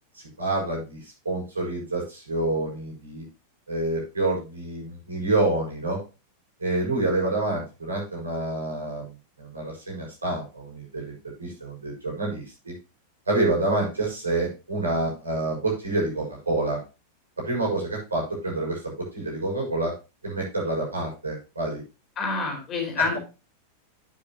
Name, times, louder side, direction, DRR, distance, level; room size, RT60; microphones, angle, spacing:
voice 1, 0.1-3.2 3.7-6.0 6.6-9.1 9.4-12.7 13.2-16.8 17.4-19.9 20.2-21.8, right 2 dB, 75° right, -3 dB, 6.7 m, -28 dB
voice 2, 22.2-23.2, left 4 dB, 30° left, 1 dB, 4.5 m, -27 dB
9.9 x 9.1 x 3.0 m, 0.30 s
figure-of-eight pair, 90°, 0 cm